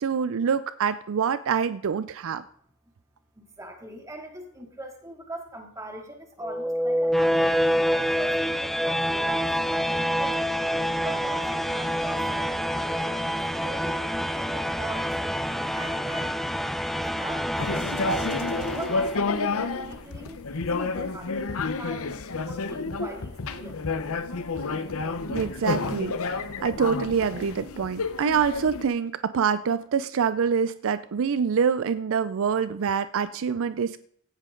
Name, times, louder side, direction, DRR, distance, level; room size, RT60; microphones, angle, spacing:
voice 1, 0.0-2.4 25.3-34.0, right 6 dB, 60° right, 14 dB, 0.4 m, -26 dB
voice 2, 3.4-7.6 7.9-10.4 10.9-13.2 13.5-15.1 15.7-16.3 17.1-18.0 18.3-22.1 22.4-23.8, right 1 dB, 15° right, 2 dB, 2.6 m, -41 dB
sound 1, 6.4-19.4, equal, ahead, 0.5 m, -27 dB
sound 2, 17.6-28.8, left 3 dB, 65° left, 0.9 m, -30 dB
16.5 x 11.5 x 3.8 m, 0.65 s
head